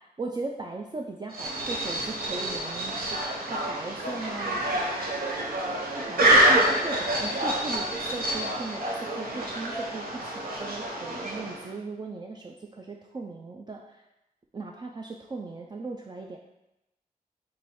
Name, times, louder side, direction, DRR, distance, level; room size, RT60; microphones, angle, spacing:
voice 1, 0.2-4.6 6.0-14.0 14.5-16.4, right 3 dB, 30° right, 0 dB, 0.3 m, -38 dB
sound 1, 1.3-11.7, right 1 dB, 75° right, 0.6 m, -27 dB
3.0 x 2.7 x 4.1 m, 0.93 s
cardioid pair, 40°, 15 cm